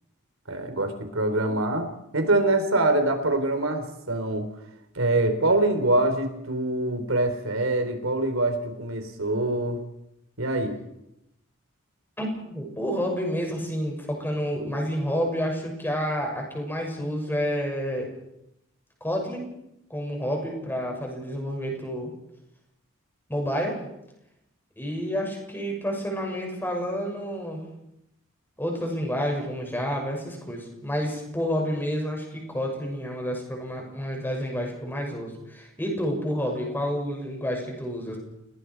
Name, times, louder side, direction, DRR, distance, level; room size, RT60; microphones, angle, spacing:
voice 1, 0.5-1.9 2.1-4.5 4.9-9.8 10.4-10.8, right 2 dB, 80° right, 7 dB, 4.0 m, -24 dB
voice 2, 12.2-18.1 19.0-19.5 19.9-22.1 23.3-23.8 24.8-27.6 28.6-38.2, equal, 10° left, 1 dB, 6.5 m, -29 dB
30.0 x 19.0 x 4.7 m, 0.83 s
head